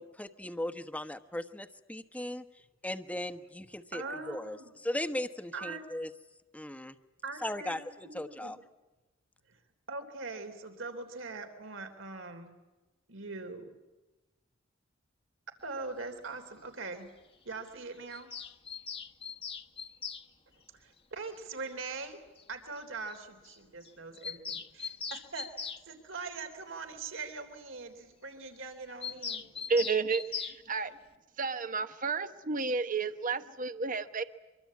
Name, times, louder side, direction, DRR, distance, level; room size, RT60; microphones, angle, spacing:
voice 1, 0.0-2.4 2.8-4.6 4.8-6.1 6.5-6.9 7.4-7.8 8.1-8.6, left 1 dB, 5° left, 9 dB, 1.2 m, -37 dB
voice 2, 3.9-4.7 5.5-5.8 7.2-7.8 8.0-8.5 9.5-9.6 9.9-12.5 13.1-13.7 15.6-17.1 17.5-18.3 20.7-22.2 22.5-29.4, right 3 dB, 75° right, 7 dB, 3.4 m, -42 dB
Bird vocalization bird call bird song, 18.1-20.2 21.7-21.8 22.0-22.1 22.4-22.5 22.8-22.9 23.1-23.2 23.4-23.6 23.8-25.8 29.0-30.6, left 6 dB, 30° left, 1.3 m, -40 dB
voice 3, 29.7-31.0 31.4-34.2, right 4 dB, 45° right, 10 dB, 1.1 m, -31 dB
25.0 x 23.5 x 8.5 m, 1.1 s
head